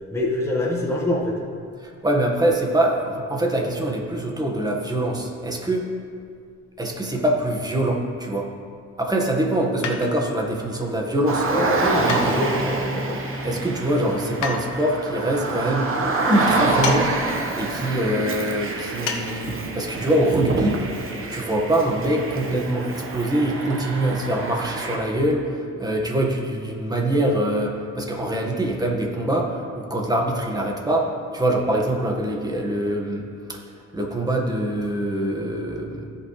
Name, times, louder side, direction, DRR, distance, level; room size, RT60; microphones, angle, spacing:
voice 1, 0.1-1.4 11.5-13.2, left 1 dB, 10° left, -3 dB, 1.6 m, -25 dB
voice 2, 1.8-5.9 6.8-8.5 9.0-11.5 12.0-12.2 13.4-15.9 16.3-17.1 17.6-20.8 21.3-33.6 33.9-36.1, right 1 dB, 15° right, 0 dB, 1.6 m, -24 dB
sound 1, 9.8-10.4 12.1-12.8 14.4-14.7 16.8-17.1 17.3-17.4 19.1-19.3 19.6-19.7, left 5 dB, 80° left, 1.0 m, -29 dB
Car, 11.3-25.0, right 3 dB, 45° right, 1.3 m, -27 dB
17.0 x 5.7 x 3.3 m, 2.3 s
cardioid pair, 90°, 30 cm